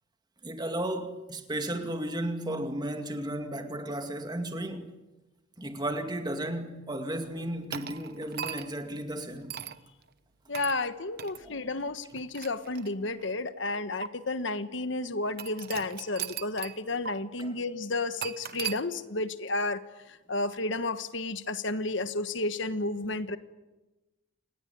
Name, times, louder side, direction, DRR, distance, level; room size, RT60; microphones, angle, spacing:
voice 1, 0.4-4.9 5.6-9.6 11.4-11.6 17.4-17.5, right 1 dB, 20° right, 2.3 m, -34 dB
sound 1, 7.7-8.9 9.5-9.8 10.5-10.8 11.2-11.4 12.1-13.2 14.0-14.1 15.4-16.8 17.1-17.2 18.2-18.8, right 8 dB, 50° right, 1.1 m, -38 dB
voice 2, 10.5-19.8 20.1-23.4, left 2 dB, 60° left, 1.3 m, -32 dB
29.0 x 20.0 x 9.3 m
head